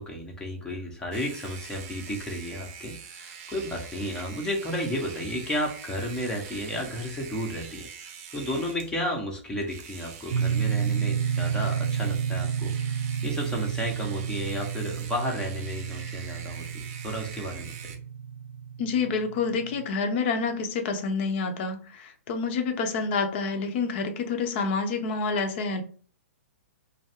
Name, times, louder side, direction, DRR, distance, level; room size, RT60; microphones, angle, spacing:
voice 1, 0.0-12.7 13.2-17.7, equal, 10° left, -1 dB, 1.2 m, -33 dB
sound 1, 1.1-8.9 9.6-18.0, right 7 dB, 40° right, 0.8 m, -44 dB
sound 2, 10.3-19.9, right 7 dB, 75° right, 0.4 m, -30 dB
voice 2, 18.8-25.8, left 4 dB, 45° left, 6 dB, 0.9 m, -28 dB
5.2 x 2.1 x 3.6 m, 0.43 s
hypercardioid pair, 135°, 8 cm